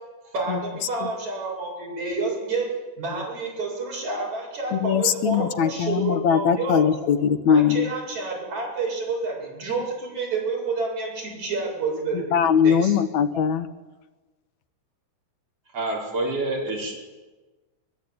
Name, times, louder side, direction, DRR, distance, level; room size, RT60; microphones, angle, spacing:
voice 1, 0.3-6.9 7.5-12.3 12.6-13.0, right 3 dB, 70° right, -2 dB, 9.6 m, -29 dB
voice 2, 4.7-7.9 12.1-13.7, left 7 dB, 70° left, 9 dB, 2.4 m, -21 dB
voice 3, 15.7-17.0, right 2 dB, 50° right, -3 dB, 6.5 m, -27 dB
23.0 x 20.5 x 9.5 m, 1.2 s
omnidirectional pair, 3.4 m